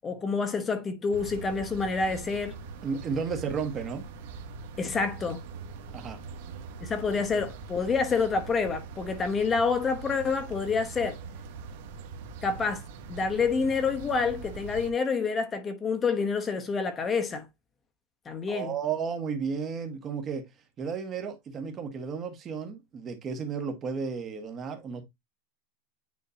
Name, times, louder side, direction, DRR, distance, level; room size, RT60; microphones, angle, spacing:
voice 1, 0.0-2.6 4.8-5.4 6.8-11.2 12.4-12.8 13.1-17.4 18.3-18.7, left 5 dB, 15° left, 1.0 m, -28 dB
sound 1, 1.1-14.9, right 4 dB, 65° right, 1.6 m, -42 dB
voice 2, 2.8-4.1 5.9-6.2 18.5-20.5 20.8-25.0, right 6 dB, 25° right, 1.6 m, -33 dB
9.6 x 3.7 x 2.8 m
supercardioid pair, 160°, 0 cm